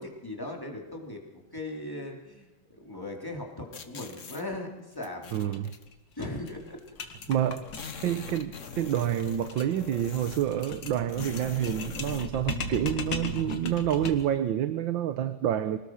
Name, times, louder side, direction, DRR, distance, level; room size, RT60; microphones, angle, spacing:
voice 1, 0.0-5.3 6.2-6.8 7.5-7.7 8.2-8.3, left 2 dB, 10° left, 1 dB, 3.6 m, -39 dB
sound 1, 3.7-4.4 5.0-5.8 6.8-6.9 7.1-7.2 7.5-10.6 11.1-12.3, left 5 dB, 45° left, 1.7 m, -43 dB
voice 2, 5.3-5.7 7.3-7.6 8.0-15.8, right 11 dB, 80° right, 11 dB, 1.7 m, -28 dB
sound 2, 5.5-5.6 5.9-6.0 6.2-14.4, left 3 dB, 70° left, 2.5 m, -38 dB
25.5 x 19.0 x 6.4 m, 1.1 s
omnidirectional pair, 2.1 m